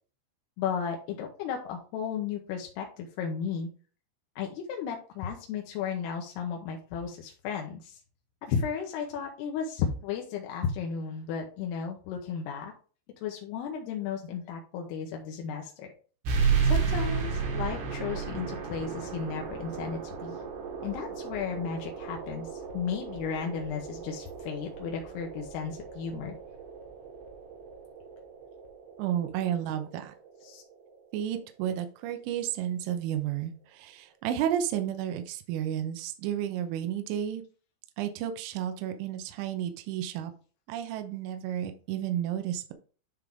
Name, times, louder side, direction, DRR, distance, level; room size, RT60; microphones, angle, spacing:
voice 1, 0.6-3.7 4.4-8.0 8.4-12.7 13.2-15.9 16.6-20.4 20.8-26.3 30.4-30.6, left 7 dB, 75° left, 1 dB, 2.5 m, -34 dB
sound 1, 16.2-31.3, right 5 dB, 65° right, 3.4 m, -33 dB
voice 2, 29.0-30.1 31.1-37.4 38.0-40.3 40.7-42.7, right 10 dB, 85° right, 7 dB, 3.3 m, -32 dB
10.5 x 3.7 x 3.5 m, 0.39 s
omnidirectional pair, 5.6 m